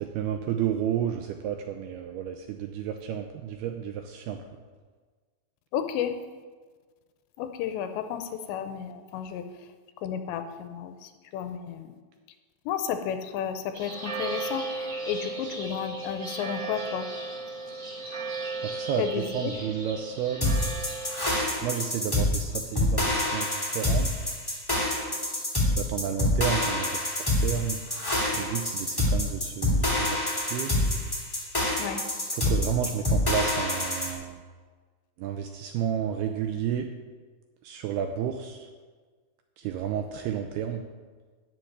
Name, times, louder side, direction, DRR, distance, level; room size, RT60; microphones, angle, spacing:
voice 1, 0.0-4.4 18.6-20.7 21.6-24.1 25.8-27.8 28.3-30.8 32.3-34.4 35.2-36.9 37.6-38.7 39.6-40.8, right 9 dB, 85° right, 5 dB, 2.3 m, -31 dB
voice 2, 5.7-6.2 7.4-9.5 10.0-12.0 12.7-17.1 19.0-19.5 31.8-32.0, left 8 dB, 85° left, 8 dB, 3.0 m, -32 dB
sound 1, 13.7-21.5, right 3 dB, 30° right, 3.5 m, -35 dB
sound 2, 20.4-34.1, left 1 dB, 10° left, 1.4 m, -26 dB
13.0 x 5.8 x 9.5 m, 1.5 s
omnidirectional pair, 5.2 m